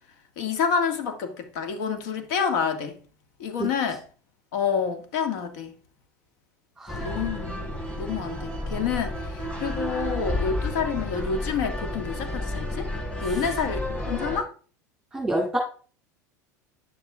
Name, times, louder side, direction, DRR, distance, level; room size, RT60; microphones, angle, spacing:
voice 1, 0.4-3.0 3.4-4.0 4.5-5.7 7.0-7.6 8.0-12.9 13.2-14.5, left 6 dB, 70° left, 1.9 m, -28 dB
sound 1, 6.9-14.4, left 1 dB, 15° left, 4.4 m, -31 dB
voice 2, 15.1-15.6, right 1 dB, 5° right, 2.2 m, -28 dB
9.7 x 7.0 x 3.5 m
hypercardioid pair, 90°, 9 cm